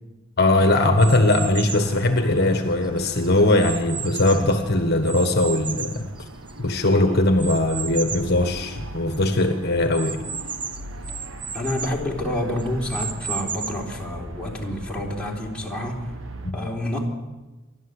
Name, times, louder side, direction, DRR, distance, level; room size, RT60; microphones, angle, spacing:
voice 1, 0.4-6.1 6.6-10.2 16.4-16.6, left 2 dB, 50° left, 6 dB, 1.4 m, -20 dB
sound 1, 0.6-16.5, right 1 dB, 70° right, 1.4 m, -40 dB
sound 2, 1.0-1.9 2.6-4.6 5.1-6.7 7.4-8.4 8.8-8.9 9.1-9.2 9.9-12.0 12.6-13.9, right 6 dB, 25° right, 0.9 m, -33 dB
voice 2, 11.5-16.1 16.5-17.0, left 1 dB, 5° left, -3 dB, 3.7 m, -28 dB
28.0 x 12.5 x 8.2 m, 1.1 s
head